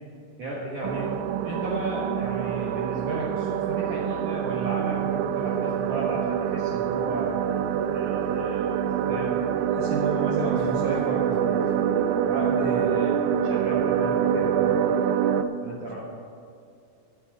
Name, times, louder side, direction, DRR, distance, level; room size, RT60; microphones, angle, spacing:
voice 1, 0.4-1.1 1.4-7.4 7.9-9.4 9.7-13.1 13.4-14.8 15.6-16.0, right 2 dB, 70° right, -4 dB, 1.9 m, -33 dB
sound 1, 0.8-15.5, right 9 dB, 85° right, 2.6 m, -25 dB
voice 2, 0.9-1.3 15.7-16.0, left 7 dB, 85° left, 4 dB, 3.6 m, -47 dB
sound 2, 5.3-6.8 7.6-7.7 8.0-8.6 10.5-12.4 13.4-14.0, left 1 dB, 55° left, 2.9 m, -50 dB
8.9 x 8.6 x 8.8 m, 2.4 s
omnidirectional pair, 5.8 m